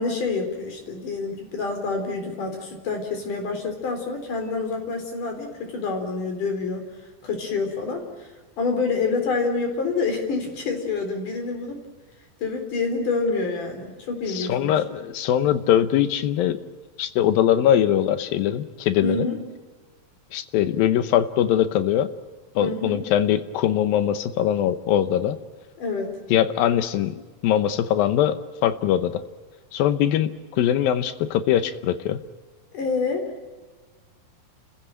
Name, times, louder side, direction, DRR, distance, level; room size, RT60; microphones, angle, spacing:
voice 1, 0.0-6.8 7.2-8.0 8.6-11.8 12.4-14.8 19.0-19.4 22.6-23.0 25.8-26.2 32.7-33.3, left 4 dB, 65° left, 4 dB, 5.5 m, -27 dB
voice 2, 14.3-16.6 17.0-19.3 20.3-22.1 22.6-25.4 26.3-29.2 29.7-30.3 30.6-32.2, left 10 dB, 85° left, 12 dB, 2.8 m, -22 dB
30.0 x 16.0 x 9.0 m, 1.3 s
omnidirectional pair, 4.0 m